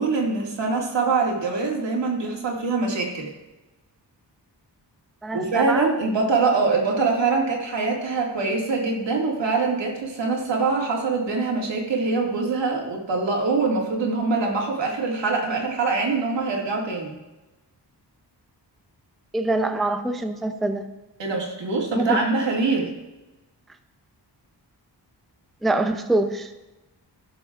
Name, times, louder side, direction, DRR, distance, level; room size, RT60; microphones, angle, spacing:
voice 1, 0.0-3.3 5.3-17.2 21.2-22.9, right 4 dB, 85° right, -1 dB, 2.1 m, -24 dB
voice 2, 5.2-5.9 19.3-20.9 21.9-22.2 25.6-26.5, right 2 dB, ahead, 6 dB, 0.4 m, -24 dB
17.5 x 7.0 x 2.4 m, 1.1 s
wide cardioid pair, 155°, 42 cm